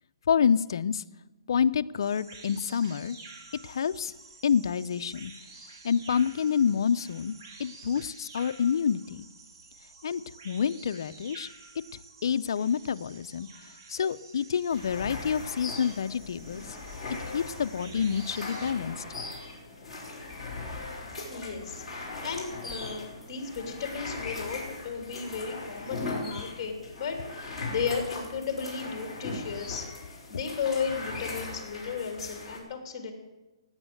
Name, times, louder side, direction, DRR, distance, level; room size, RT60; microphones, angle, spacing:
voice 1, 0.3-1.0 1.5-3.2 3.6-4.1 4.4-5.3 5.8-7.3 7.6-9.3 10.0-11.5 12.2-13.5 13.9-16.6 17.3-19.0, left 7 dB, 50° left, 10 dB, 0.5 m, -27 dB
sound 1, 2.0-18.7, right 4 dB, 45° right, 2.0 m, -50 dB
sound 2, 14.7-32.6, left 3 dB, ahead, 3.9 m, -39 dB
voice 2, 21.3-29.9 30.3-33.1, left 6 dB, 25° left, 4 dB, 2.9 m, -34 dB
17.0 x 8.9 x 7.8 m, 1.1 s
hypercardioid pair, 170°, 3 cm